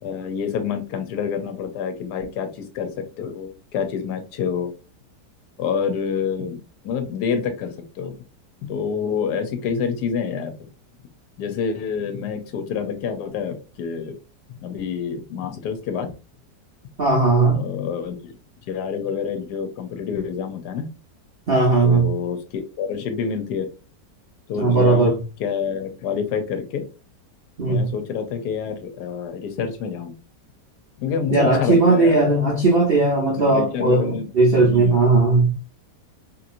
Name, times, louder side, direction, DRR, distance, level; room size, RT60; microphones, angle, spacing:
voice 1, 0.0-4.7 5.6-8.2 8.6-10.5 11.4-14.2 14.6-16.1 17.5-18.3 18.7-20.9 21.8-23.7 24.5-25.1 25.4-26.8 27.6-30.1 31.0-32.5 33.3-34.3 34.6-35.0, left 6 dB, 75° left, 1.2 m, -27 dB
voice 2, 17.0-17.6 21.5-22.2 24.6-25.2 27.6-27.9 31.3-35.5, right 3 dB, 50° right, 0.7 m, -17 dB
3.0 x 2.8 x 2.5 m
omnidirectional pair, 1.9 m